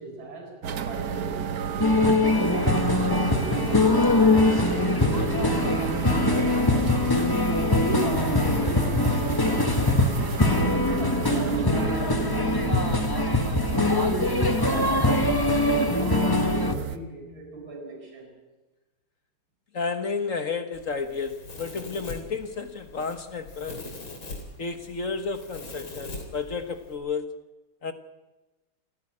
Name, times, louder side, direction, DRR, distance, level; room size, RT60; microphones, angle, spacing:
voice 1, 0.0-1.7 2.3-6.9 7.6-12.9 13.9-18.3, right 2 dB, 85° right, 1 dB, 7.7 m, -37 dB
sound 1, 0.6-17.0, right 7 dB, 55° right, 1.4 m, -32 dB
sound 2, 1.8-16.7, left 2 dB, 15° left, 1.3 m, -23 dB
voice 2, 19.7-23.9 24.6-27.5 27.8-27.9, left 4 dB, 45° left, 8 dB, 1.4 m, -32 dB
Domestic sounds home sounds, 20.7-26.9, left 2 dB, 90° left, 4.2 m, -42 dB
28.5 x 11.0 x 9.8 m, 1.1 s
omnidirectional pair, 2.1 m